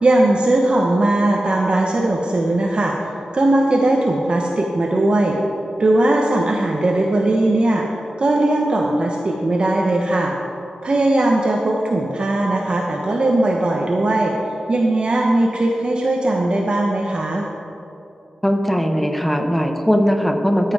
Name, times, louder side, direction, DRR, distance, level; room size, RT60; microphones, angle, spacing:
voice 1, 0.0-5.4 5.8-10.3 10.8-14.3 14.7-17.5, right 1 dB, 40° right, -1 dB, 0.9 m, -18 dB
voice 2, 18.4-20.7, equal, 5° left, 5 dB, 0.9 m, -19 dB
14.0 x 7.6 x 4.8 m, 2.9 s
wide cardioid pair, 115°, 3 cm